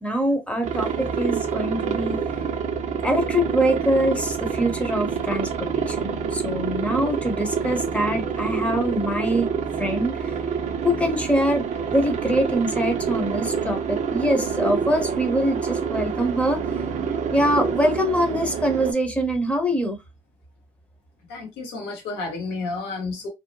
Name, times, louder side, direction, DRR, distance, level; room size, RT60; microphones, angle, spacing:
voice 1, 0.0-2.2 3.0-5.5 5.7-9.5 9.8-10.1 10.8-16.6 17.3-20.0, equal, 5° left, 0.7 m, -24 dB
Aircraft, 0.6-18.9, right 6 dB, 45° right, 0.5 m, -27 dB
voice 2, 21.3-23.3, left 3 dB, 85° left, 1.1 m, -31 dB
2.7 x 2.0 x 2.6 m
cardioid pair, 110°, 17 cm